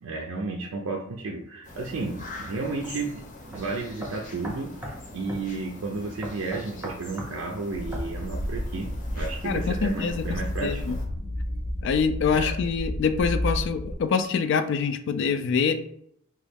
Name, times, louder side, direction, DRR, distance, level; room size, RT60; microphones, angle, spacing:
voice 1, 0.0-3.2 3.5-11.0 12.3-12.6, right 3 dB, 80° right, 0 dB, 0.4 m, -33 dB
sound 1, 1.6-11.0, left 2 dB, 40° left, 0.7 m, -44 dB
sound 2, 2.8-3.0 3.5-3.6 4.0-5.0 5.3-5.5 6.2-7.4 7.9-8.1, right 1 dB, 10° right, 0.6 m, -37 dB
sound 3, 7.7-14.0, equal, 80° left, 0.7 m, -31 dB
voice 2, 9.4-11.0 11.8-15.8, left 5 dB, 60° left, 10 dB, 0.3 m, -25 dB
3.0 x 2.3 x 3.3 m, 0.70 s
head